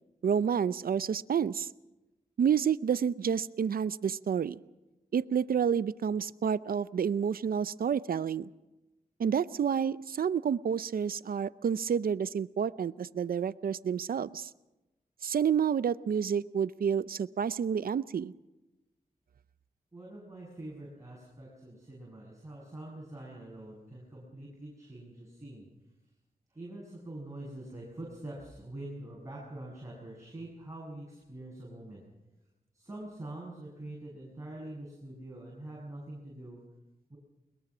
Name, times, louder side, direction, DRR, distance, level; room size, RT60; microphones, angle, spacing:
voice 1, 0.2-1.7 2.4-4.6 5.1-8.5 9.2-14.5 15.2-18.3, right 7 dB, 75° right, 17 dB, 0.6 m, -29 dB
voice 2, 19.9-25.7 26.5-32.0 32.7-36.6 37.1-37.2, right 1 dB, 20° right, -4 dB, 7.5 m, -45 dB
22.0 x 22.0 x 6.2 m, 1.0 s
wide cardioid pair, 75°, 15 cm